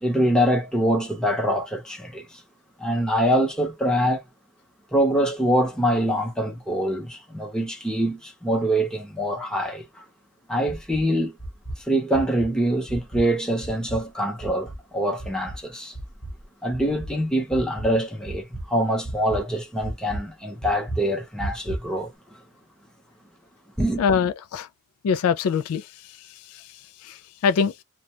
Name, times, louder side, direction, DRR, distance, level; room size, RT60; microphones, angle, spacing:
voice 1, 0.0-2.4 2.8-4.2 4.9-10.0 10.5-11.3 11.8-15.9 16.6-22.1 23.8-24.0, equal, 5° left, 0.8 m, -24 dB
sound 1, 10.7-11.1 11.4-11.8 12.1-12.5 12.9-13.3 13.6-14.1 14.4-14.8 15.2-15.6 16.0-16.4 16.7-17.1 17.5-18.0 18.3-18.7 19.0-19.4 19.8-20.2 20.6-21.0 21.4-21.9, right 1 dB, 25° left, 1.1 m, -33 dB
voice 2, 24.0-24.7 25.0-27.8, left 6 dB, 70° left, 0.3 m, -25 dB
2.4 x 2.2 x 2.9 m
head